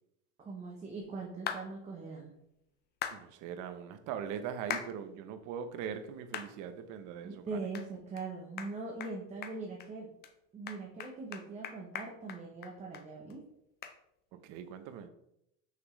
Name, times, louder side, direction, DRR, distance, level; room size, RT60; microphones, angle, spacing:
voice 1, 0.4-2.3 7.2-10.1 10.5-13.4, right 3 dB, 20° right, 0.8 m, -41 dB
sound 1, 1.5-1.6 3.0-3.2 4.7-4.9 5.4-5.5 6.3-6.5 7.0-7.1 7.7-7.9 8.2-8.3 8.6-8.7 9.0-9.1 9.4-9.9 10.2-10.3 10.7-13.0 13.3-13.4 13.8-14.0, left 8 dB, 25° left, 0.4 m, -39 dB
voice 2, 3.1-7.6 14.3-15.1, right 8 dB, 50° right, 0.8 m, -41 dB
6.1 x 5.9 x 3.1 m
cardioid pair, 155°, 38 cm